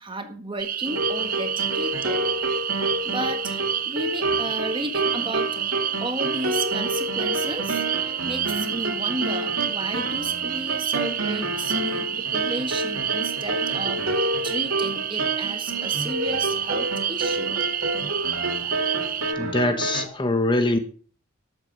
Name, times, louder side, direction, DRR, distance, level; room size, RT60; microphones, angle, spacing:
voice 1, 0.0-2.2 2.7-5.6 6.0-17.6, right 1 dB, 25° right, 7 dB, 1.5 m, -34 dB
sound 1, 0.6-19.3, right 9 dB, 40° right, 0.7 m, -29 dB
sound 2, 0.8-20.1, right 1 dB, 85° right, 2.9 m, -29 dB
voice 2, 19.4-20.8, left 2 dB, 20° left, 8 dB, 1.2 m, -23 dB
12.5 x 8.1 x 6.0 m, 0.42 s
head